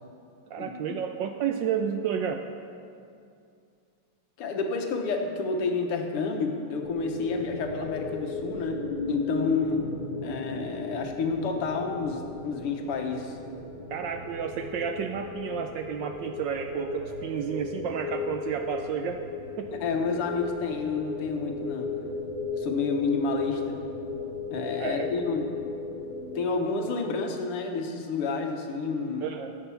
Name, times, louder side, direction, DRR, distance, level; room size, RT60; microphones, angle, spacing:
voice 1, 0.5-2.4 13.9-19.2 19.6-19.7 24.8-25.1 29.2-29.5, right 8 dB, 75° right, 6 dB, 1.0 m, -31 dB
voice 2, 4.4-9.9 10.2-13.4 19.8-22.0 22.6-23.8 24.5-25.7 26.4-29.4, left 4 dB, 90° left, 3 dB, 2.0 m, -30 dB
sound 1, 6.8-26.5, left 4 dB, 30° left, 1.1 m, -36 dB
13.5 x 7.9 x 5.7 m, 2.5 s
omnidirectional pair, 2.4 m